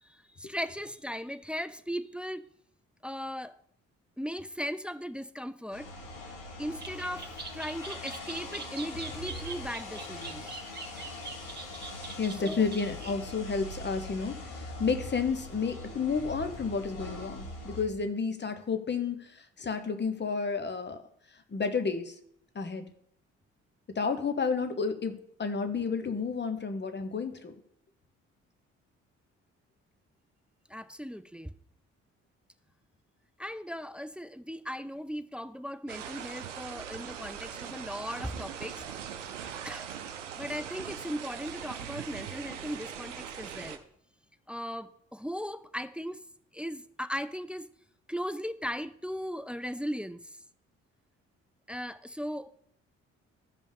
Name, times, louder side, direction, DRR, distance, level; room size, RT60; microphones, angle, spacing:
voice 1, 0.0-2.5 3.0-3.6 4.2-5.9 6.6-10.6 12.4-12.6 30.7-31.5 33.4-38.8 39.6-39.9 40.4-43.8 44.5-46.3 46.5-47.7 48.1-50.4 51.7-52.5, equal, 5° right, 0.4 m, -37 dB
sound 1, 5.7-17.8, left 2 dB, 80° left, 2.6 m, -42 dB
sound 2, 6.8-13.1, right 4 dB, 25° right, 1.8 m, -43 dB
voice 2, 12.2-21.0 21.5-22.1 22.5-22.9 23.9-25.1 25.4-27.5, left 5 dB, 30° left, 1.1 m, -31 dB
sound 3, 35.9-43.8, right 8 dB, 85° right, 0.6 m, -41 dB
14.0 x 5.2 x 3.5 m
figure-of-eight pair, 45°, 36 cm